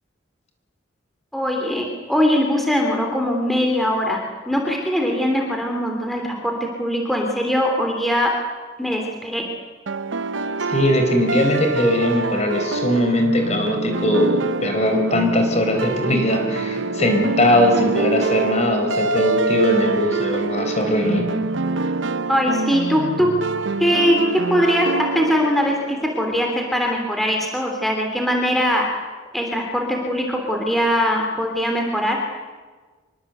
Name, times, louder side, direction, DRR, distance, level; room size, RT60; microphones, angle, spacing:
voice 1, 1.3-8.3 8.8-9.5 22.3-23.3 23.8-24.2 24.5-28.9 29.3-32.2, equal, ahead, 1 dB, 3.1 m, -21 dB
sound 1, 9.9-26.7, right 3 dB, 85° right, 0.9 m, -25 dB
voice 2, 10.7-21.3, left 1 dB, 35° left, 4 dB, 4.6 m, -20 dB
26.0 x 23.0 x 8.1 m, 1.4 s
head